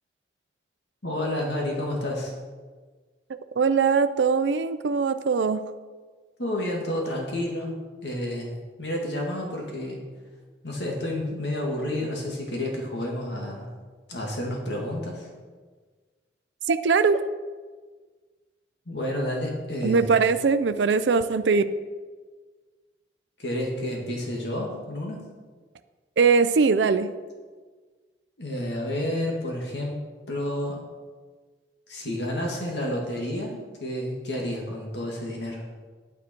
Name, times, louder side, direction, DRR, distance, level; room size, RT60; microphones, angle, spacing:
voice 1, 1.0-2.3 6.4-10.0 10.6-13.7 14.1-15.3 18.9-20.1 23.4-25.2 28.4-30.0 30.3-30.8 31.9-35.6, left 1 dB, 75° left, -1 dB, 2.1 m, -30 dB
voice 2, 3.6-5.6 16.7-17.2 19.8-21.6 26.2-27.1, right 5 dB, 90° right, 11 dB, 0.5 m, -21 dB
9.5 x 9.4 x 4.5 m, 1.4 s
head